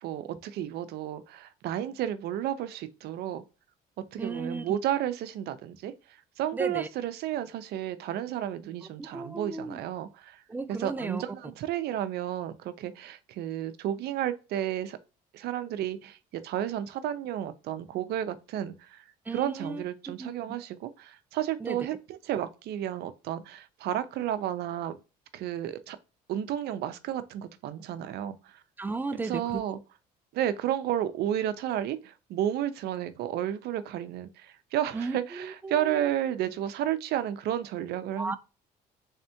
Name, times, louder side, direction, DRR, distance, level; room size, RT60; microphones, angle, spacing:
voice 1, 0.0-3.4 4.0-5.9 6.4-10.4 10.8-15.0 15.3-19.0 19.3-25.0 25.3-26.0 26.3-28.6 29.2-29.8 30.3-38.4, right 11 dB, 75° right, 0.5 m, -32 dB
voice 2, 4.2-4.7 6.5-6.9 9.0-9.8 10.5-11.2 19.3-20.6 21.6-21.9 28.8-29.6 34.9-36.1 38.2-38.4, right 3 dB, 10° right, 0.3 m, -35 dB
3.5 x 3.3 x 2.7 m
cardioid pair, 110°, 17 cm